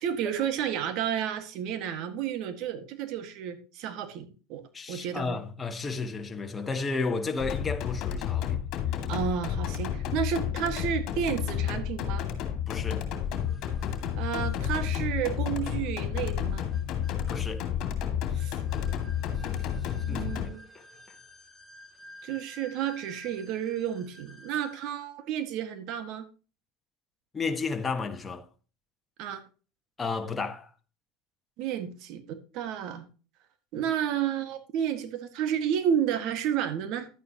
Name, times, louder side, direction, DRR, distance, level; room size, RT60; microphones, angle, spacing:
voice 1, 0.0-4.6 4.9-5.4 9.1-12.3 14.2-16.7 18.4-18.6 20.1-20.6 22.2-26.3 29.2-29.4 31.6-33.0 33.7-37.1, right 9 dB, 60° right, 1.8 m, -31 dB
voice 2, 4.7-8.6 12.7-13.0 17.3-17.6 20.1-20.3 27.3-28.4 30.0-30.7, left 4 dB, 20° left, 1.5 m, -32 dB
sound 1, 7.4-20.5, left 9 dB, 55° left, 2.3 m, -31 dB
sound 2, 13.1-25.0, left 1 dB, ahead, 2.2 m, -53 dB
11.5 x 9.1 x 3.0 m
supercardioid pair, 100°, 0 cm